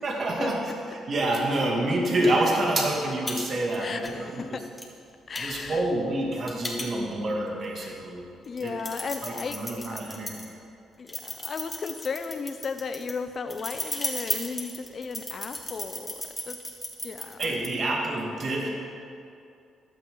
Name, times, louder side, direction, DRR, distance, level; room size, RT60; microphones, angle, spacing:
voice 1, 0.0-4.6 5.4-8.3 8.6-8.8 9.2-10.3 17.4-18.7, right 1 dB, 50° right, -1 dB, 2.5 m, -27 dB
sound 1, 3.3-3.4 3.7-4.1 4.8-4.9 5.4-7.3 7.8-7.9 8.4-10.5 11.1-17.7, left 2 dB, 15° left, 2.2 m, -35 dB
voice 2, 3.8-4.7 5.3-5.8 7.8-8.0 8.5-10.0 11.0-16.2 16.4-16.6 17.0-17.6, left 5 dB, 45° left, 8 dB, 0.7 m, -35 dB
15.0 x 11.0 x 4.0 m, 2.5 s
cardioid pair, 90°, 0 cm